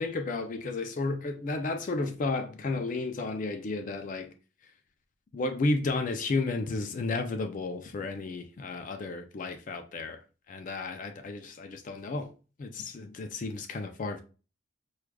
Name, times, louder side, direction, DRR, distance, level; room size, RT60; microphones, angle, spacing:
voice 1, 0.0-4.3 5.3-10.2 10.5-12.3 12.6-14.2, left 3 dB, 40° left, 0.3 m, -32 dB
4.7 x 2.3 x 2.2 m
head